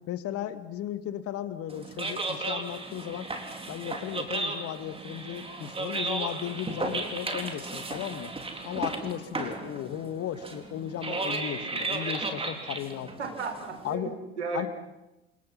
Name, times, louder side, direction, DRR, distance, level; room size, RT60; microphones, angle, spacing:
voice 1, 0.1-3.3 3.7-8.3 8.6-13.1 13.8-14.1 14.5-14.7, left 10 dB, 45° left, 11 dB, 2.1 m, -35 dB
sound 1, 1.7-13.9, right 3 dB, 15° right, 4.0 m, -35 dB
voice 2, 13.2-14.7, right 4 dB, 80° right, 6 dB, 4.4 m, -34 dB
30.0 x 27.5 x 5.8 m, 0.96 s
figure-of-eight pair, 70°, 34 cm